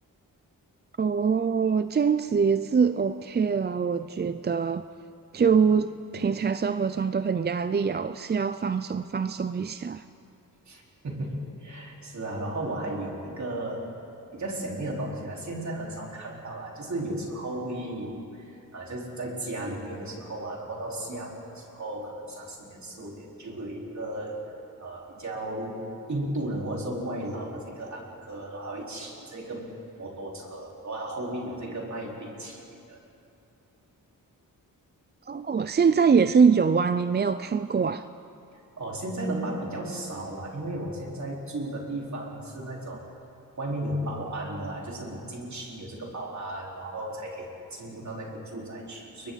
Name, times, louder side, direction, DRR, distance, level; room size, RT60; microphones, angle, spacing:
voice 1, 1.0-4.9 5.3-10.0 35.3-38.1, right 6 dB, 30° right, 12 dB, 0.4 m, -24 dB
voice 2, 10.7-13.9 14.3-24.4 24.8-29.7 30.0-33.0 38.8-43.1 43.6-49.3, right 1 dB, 55° right, -2 dB, 4.2 m, -35 dB
30.0 x 23.0 x 4.0 m, 2.6 s
wide cardioid pair, 115°, 35 cm